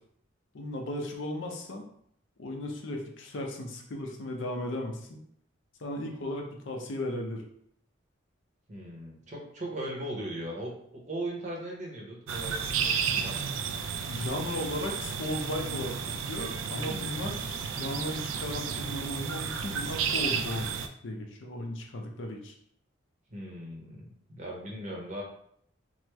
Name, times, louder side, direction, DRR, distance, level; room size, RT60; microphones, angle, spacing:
voice 1, 0.5-1.9 2.4-5.2 5.8-7.4 14.1-20.7 21.0-22.5, left 1 dB, 70° left, 2 dB, 0.5 m, -36 dB
voice 2, 8.7-13.4 16.7-17.1 23.3-25.2, right 1 dB, 35° right, -2 dB, 0.7 m, -38 dB
sound 1, 12.3-20.9, right 6 dB, 75° right, 0.3 m, -32 dB
3.0 x 2.0 x 3.3 m, 0.67 s
head